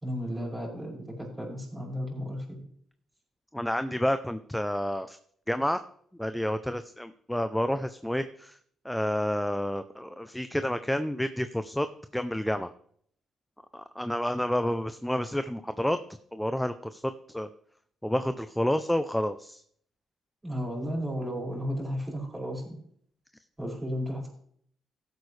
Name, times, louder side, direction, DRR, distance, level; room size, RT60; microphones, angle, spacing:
voice 1, 0.0-2.6 20.4-22.8 23.6-24.3, equal, 15° right, -2 dB, 5.4 m, -34 dB
voice 2, 3.5-5.2 5.5-5.8 6.2-8.6 8.8-11.9 12.1-12.7 13.7-16.0 16.3-17.0 17.3-17.5 18.0-19.6, left 1 dB, 5° left, 11 dB, 0.5 m, -29 dB
15.0 x 8.2 x 3.3 m, 0.64 s
cardioid pair, 90°, 0 cm